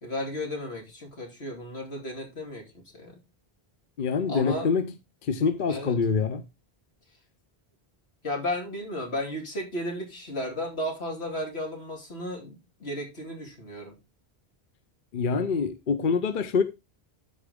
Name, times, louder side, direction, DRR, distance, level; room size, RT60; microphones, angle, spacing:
voice 1, 0.0-3.2 4.3-4.7 5.7-6.0 8.2-14.0, left 1 dB, 90° left, 3.1 m, -34 dB
voice 2, 4.0-4.9 5.3-6.4 15.1-16.6, left 5 dB, 55° left, 0.9 m, -25 dB
12.5 x 4.9 x 3.5 m
omnidirectional pair, 1.0 m